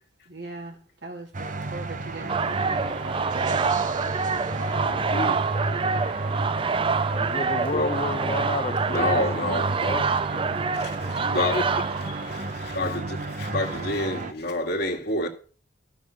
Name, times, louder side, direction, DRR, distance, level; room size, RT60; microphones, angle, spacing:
voice 1, 0.3-3.1, right 2 dB, 70° right, 2.8 m, -40 dB
sound 1, 1.3-14.3, right 2 dB, 45° right, 0.8 m, -32 dB
sound 2, 2.3-12.8, right 5 dB, 30° right, 0.4 m, -27 dB
voice 2, 4.7-5.4 7.7-8.0 8.9-10.0 10.3-11.6 12.3-15.3, left 2 dB, 60° left, 2.0 m, -29 dB
voice 3, 7.0-9.1 9.9-10.0 11.2-11.6 12.2-12.6, left 3 dB, 35° left, 0.8 m, -31 dB
13.0 x 5.8 x 6.4 m
head